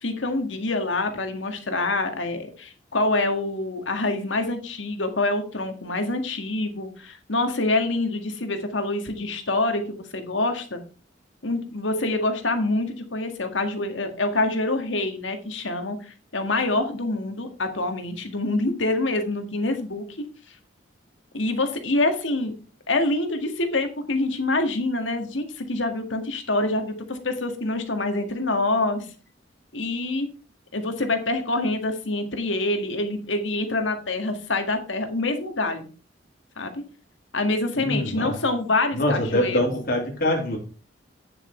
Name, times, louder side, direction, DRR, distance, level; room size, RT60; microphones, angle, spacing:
voice 1, 0.0-10.8 11.4-20.0 21.3-22.5 22.9-29.1 29.7-30.3 30.7-35.9 36.6-36.8 37.3-39.6, left 2 dB, 85° left, 6 dB, 1.9 m, -26 dB
voice 2, 37.8-38.4 38.9-40.6, left 1 dB, 50° left, 0 dB, 3.4 m, -24 dB
9.4 x 7.2 x 4.4 m, 0.37 s
head